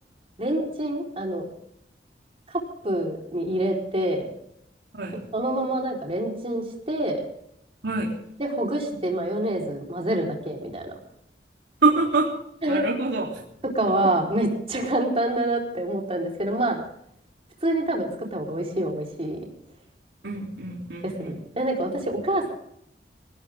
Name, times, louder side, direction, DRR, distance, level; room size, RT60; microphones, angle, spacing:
voice 1, 0.4-1.5 2.8-4.3 5.3-7.2 8.4-10.9 12.6-12.8 13.7-16.8 17.6-19.4 21.0-22.5, right 1 dB, 35° right, 0 dB, 4.4 m, -26 dB
voice 2, 11.8-12.3 12.7-13.4 20.2-21.3, right 3 dB, 80° right, -2 dB, 3.4 m, -25 dB
19.5 x 19.0 x 3.7 m, 0.72 s
head